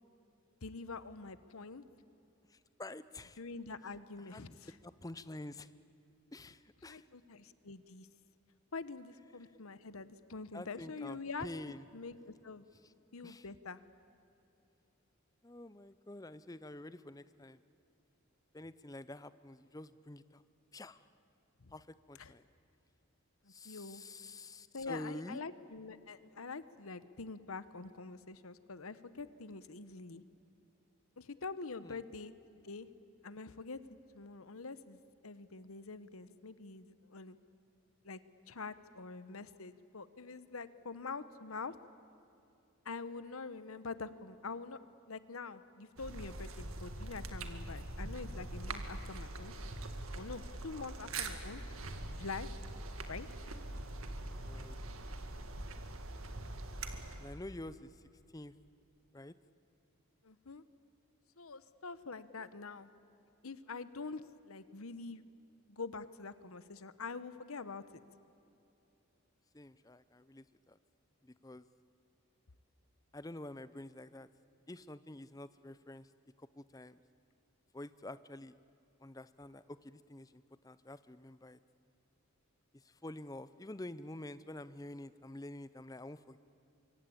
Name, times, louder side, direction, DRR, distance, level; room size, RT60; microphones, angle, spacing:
voice 1, 0.6-1.8 3.4-4.7 6.9-8.1 8.7-11.5 11.9-12.7 13.1-13.8 21.6-21.7 22.2-22.3 23.4-24.0 24.7-30.2 31.2-32.3 32.6-32.9 33.2-33.8 34.1-37.4 38.0-38.2 38.5-41.7 42.8-44.8 45.1-49.5 50.1-51.6 52.2-52.5 53.1-53.3 60.2-60.6 61.4-62.9 63.4-65.2 65.7-67.8, left 4 dB, 80° left, 14 dB, 1.0 m, -45 dB
voice 2, 2.5-3.4 4.2-5.7 6.3-7.1 9.4-9.5 10.5-11.9 12.8-12.9 13.2-13.5 15.4-17.6 18.5-20.4 20.7-21.1 21.7-22.4 23.5-25.4 31.8-32.0 54.4-54.8 57.2-58.0 58.3-58.5 59.1-59.3 69.5-70.8 71.2-71.7 73.1-74.3 74.7-76.1 76.4-77.0 77.7-78.5 79.0-81.6 82.7-86.4, left 1 dB, 15° left, 15 dB, 0.6 m, -48 dB
sound 1, 46.0-57.4, right 2 dB, 80° right, 2.0 m, -43 dB
24.5 x 24.0 x 8.6 m, 2.8 s
head